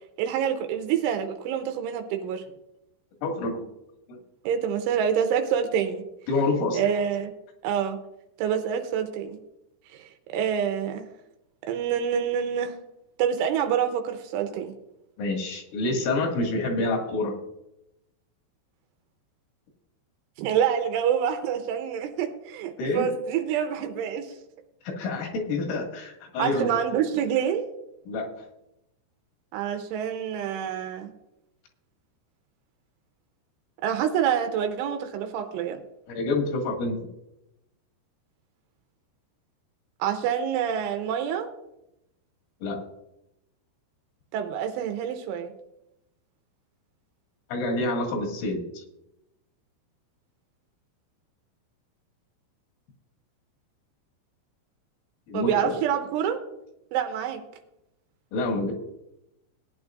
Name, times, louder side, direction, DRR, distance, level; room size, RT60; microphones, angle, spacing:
voice 1, 0.2-2.4 4.4-6.0 6.7-7.3 7.6-8.0 8.4-9.4 9.9-11.1 11.7-12.8 13.2-14.7 20.4-24.4 26.4-27.7 29.5-31.1 33.8-35.8 40.0-41.5 44.3-45.5 55.3-56.4 56.9-57.4, right 8 dB, 85° right, 6 dB, 3.3 m, -27 dB
voice 2, 3.2-3.7 4.1-4.2 6.3-6.8 15.2-17.4 22.8-23.1 24.8-26.7 28.1-28.5 36.1-37.0 42.6-42.8 47.5-48.8 55.3-55.8 58.3-58.7, left 2 dB, 80° left, 1 dB, 4.6 m, -27 dB
19.0 x 9.8 x 2.5 m, 0.86 s
omnidirectional pair, 5.5 m